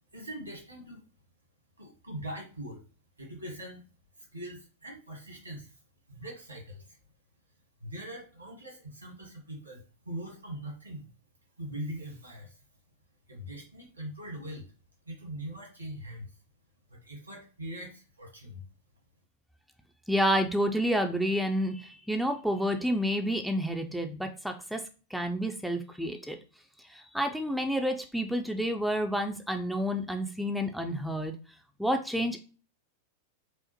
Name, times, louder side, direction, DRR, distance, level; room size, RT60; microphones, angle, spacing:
voice 1, 0.1-1.0 1.8-2.8 3.2-3.9 4.2-5.8 6.1-7.0 7.8-11.1 11.6-12.6 13.3-14.6 15.0-16.3 16.9-18.6, right 1 dB, 85° right, 0 dB, 1.4 m, -42 dB
voice 2, 20.1-24.8 25.1-26.4 26.8-31.3 31.8-32.4, equal, ahead, 4 dB, 0.4 m, -29 dB
4.9 x 2.0 x 3.0 m, 0.35 s
figure-of-eight pair, 90°, 0 cm